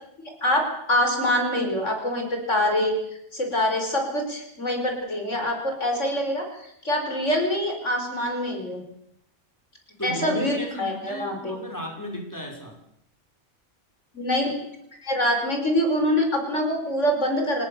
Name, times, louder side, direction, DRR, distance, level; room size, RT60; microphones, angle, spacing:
voice 1, 0.4-2.9 3.3-8.8 10.0-11.6 14.1-14.6 15.0-17.7, left 1 dB, 70° left, 3 dB, 5.7 m, -25 dB
voice 2, 10.0-12.7, equal, 15° left, 1 dB, 5.7 m, -34 dB
28.5 x 19.5 x 7.0 m, 0.74 s
omnidirectional pair, 1.3 m